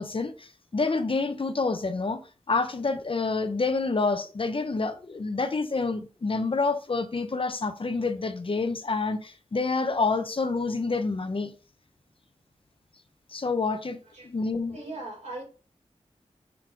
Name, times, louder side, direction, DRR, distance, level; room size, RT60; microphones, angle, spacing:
voice 1, 0.0-2.2 2.5-11.5 13.3-14.0 14.2-14.8, left 3 dB, 50° left, 0.8 m, -28 dB
voice 2, 14.7-15.4, right 2 dB, 75° right, 4.0 m, -39 dB
6.2 x 4.0 x 4.5 m
cardioid pair, 55°, 12 cm